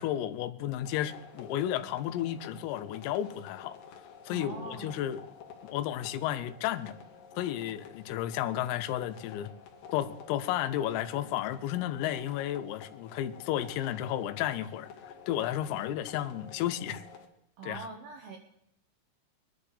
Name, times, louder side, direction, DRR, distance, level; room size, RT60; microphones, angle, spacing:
voice 1, 0.0-3.8 4.3-5.2 5.6-6.9 7.4-9.5 9.9-14.9 15.3-17.0 17.6-17.8, left 12 dB, 90° left, 3.4 m, -32 dB
sound 1, 0.8-17.3, left 7 dB, 75° left, 2.1 m, -50 dB
voice 2, 4.3-5.1 17.6-18.4, right 4 dB, 75° right, 2.3 m, -43 dB
23.5 x 11.5 x 3.3 m
omnidirectional pair, 5.9 m